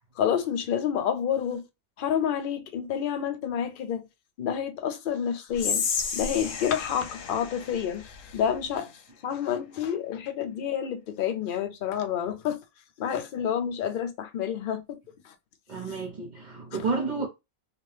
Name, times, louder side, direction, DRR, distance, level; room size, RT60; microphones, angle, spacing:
voice 1, 0.2-1.6 2.0-4.0 4.4-5.9 6.1-8.9 9.2-12.6 13.0-15.0 15.2-15.3 16.7-16.8, left 8 dB, 60° left, 0.5 m, -29 dB
Whispering, 5.5-8.8, left 6 dB, 75° left, 1.0 m, -32 dB
voice 2, 15.7-17.3, right 4 dB, 40° right, 0.8 m, -30 dB
2.8 x 2.5 x 3.1 m
omnidirectional pair, 1.4 m